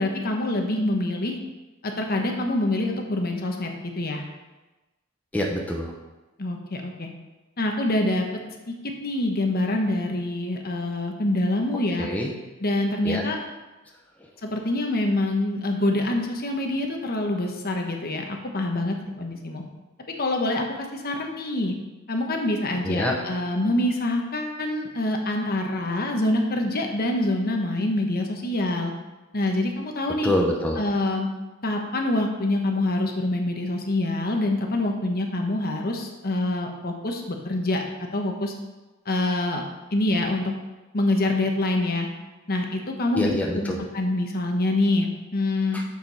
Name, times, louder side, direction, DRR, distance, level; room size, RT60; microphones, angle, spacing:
voice 1, 0.0-1.4 1.8-3.7 4.0-4.2 6.4-7.1 7.6-8.3 8.7-8.8 9.0-12.1 12.6-13.4 14.4-19.6 20.2-20.7 20.9-21.7 22.1-28.9 29.3-30.3 30.8-31.3 31.6-37.8 38.1-38.5 39.1-39.6 39.9-40.5 40.9-42.1 42.5-45.8, left 1 dB, 45° left, 2 dB, 1.1 m, -25 dB
voice 2, 5.3-5.9 12.0-12.3 13.0-13.2 22.8-23.2 30.2-30.8 43.1-43.8 45.7-45.8, left 1 dB, 5° left, -1 dB, 0.8 m, -25 dB
6.8 x 6.6 x 5.6 m, 1.1 s
head